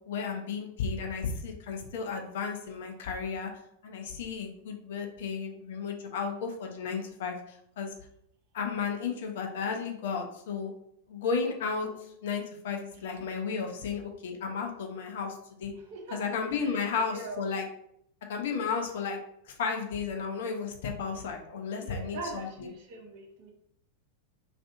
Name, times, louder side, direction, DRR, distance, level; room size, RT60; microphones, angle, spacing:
voice 1, 0.1-3.5 3.8-7.9 8.5-10.7 11.1-15.7 16.1-17.6 18.3-19.2 19.4-22.7, left 5 dB, 55° left, 3 dB, 0.5 m, -33 dB
voice 2, 15.9-17.5 21.8-23.5, right 3 dB, 50° right, 1 dB, 0.6 m, -42 dB
2.5 x 2.5 x 2.4 m, 0.72 s
figure-of-eight pair, 90°, 0 cm